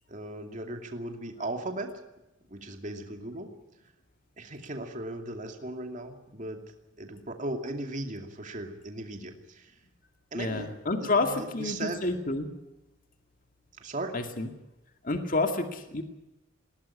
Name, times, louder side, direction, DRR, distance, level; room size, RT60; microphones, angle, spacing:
voice 1, 0.1-1.9 2.5-3.5 4.4-6.6 7.0-9.7 10.3-10.7 11.0-12.0 13.8-14.1, right 2 dB, 40° right, 5 dB, 2.6 m, -37 dB
voice 2, 10.3-12.5 14.1-14.5 15.0-16.0, left 3 dB, 40° left, 6 dB, 2.2 m, -29 dB
21.0 x 17.5 x 9.9 m, 0.97 s
head